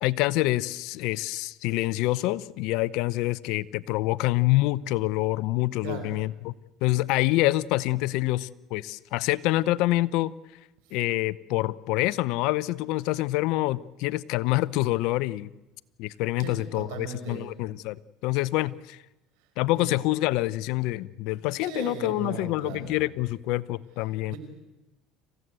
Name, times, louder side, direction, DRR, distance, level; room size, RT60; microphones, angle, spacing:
voice 1, 0.0-6.5 6.8-10.3 10.9-15.5 16.0-18.0 18.2-19.0 19.6-24.4, left 18 dB, 70° left, 20 dB, 0.7 m, -26 dB
voice 2, 5.8-6.2 10.8-11.0 16.4-17.6 19.4-19.5 19.7-19.9 21.4-23.1 24.3-24.4, right 7 dB, 75° right, 5 dB, 5.8 m, -38 dB
27.0 x 16.0 x 8.1 m, 1.0 s
supercardioid pair, 95°, 0 cm